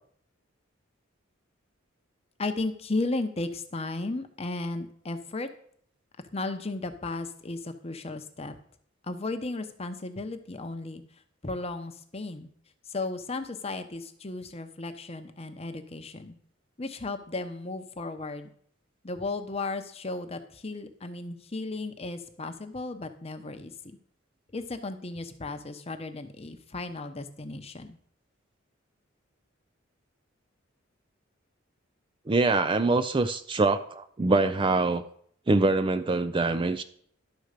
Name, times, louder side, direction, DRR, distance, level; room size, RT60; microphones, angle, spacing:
voice 1, 2.4-5.5 6.3-8.5 9.0-11.0 11.4-12.5 12.9-16.3 16.8-18.5 19.0-24.0 24.5-28.0, left 2 dB, 30° left, 8 dB, 0.8 m, -35 dB
voice 2, 32.3-35.0 35.5-36.8, right 3 dB, 25° right, 11 dB, 0.4 m, -24 dB
11.5 x 4.4 x 6.6 m, 0.62 s
head